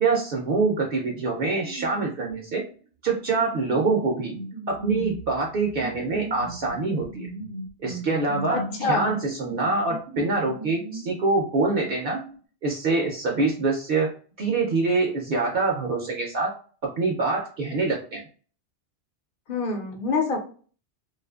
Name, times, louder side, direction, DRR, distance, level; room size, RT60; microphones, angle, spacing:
voice 1, 0.0-2.6 3.0-4.3 4.7-7.3 7.8-12.2 12.6-14.1 14.4-16.5 16.8-18.2, right 3 dB, 65° right, 0 dB, 0.7 m, -25 dB
sound 1, 1.5-2.3 3.1-11.2 11.4-12.3, right 2 dB, 85° right, 1.0 m, -37 dB
voice 2, 8.5-9.2 19.5-20.4, left 3 dB, 55° left, 3 dB, 0.7 m, -26 dB
2.6 x 2.4 x 2.2 m, 0.40 s
omnidirectional pair, 1.1 m